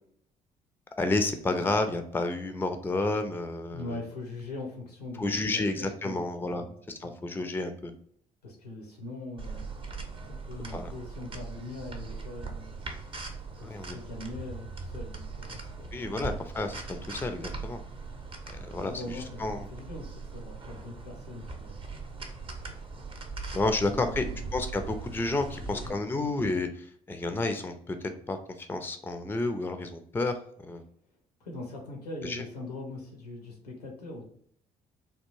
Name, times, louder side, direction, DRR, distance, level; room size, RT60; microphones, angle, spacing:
voice 1, 1.0-4.0 5.2-6.6 7.0-7.9 10.7-10.9 13.7-14.0 15.9-17.8 18.5-19.7 23.5-24.2 24.5-30.8 32.2-32.4, left 2 dB, 10° left, 7 dB, 0.5 m, -31 dB
voice 2, 3.7-6.3 6.5-6.8 7.0-7.2 8.4-12.8 13.6-15.9 18.8-19.4 19.7-21.9 23.6-24.4 25.5-26.0 31.4-34.2, left 2 dB, 85° left, 1 dB, 0.7 m, -42 dB
sound 1, 9.4-25.9, right 4 dB, 25° right, 0.7 m, -40 dB
3.4 x 2.4 x 3.0 m, 0.65 s
figure-of-eight pair, 45°, 19 cm